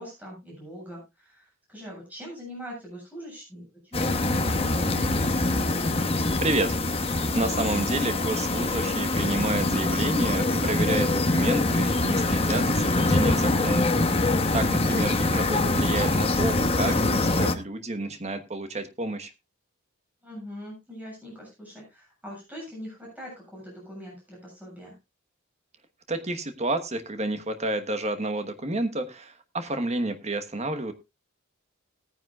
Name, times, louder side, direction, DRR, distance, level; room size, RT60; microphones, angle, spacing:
voice 1, 0.0-5.5 20.2-24.9, equal, 10° right, -3 dB, 7.3 m, -42 dB
sound 1, 3.9-17.6, left 2 dB, 25° left, 0.9 m, -24 dB
voice 2, 6.4-6.7 7.3-13.9 14.5-19.3 26.1-30.9, right 2 dB, 30° right, 9 dB, 1.2 m, -30 dB
18.5 x 9.6 x 2.4 m, 0.23 s
head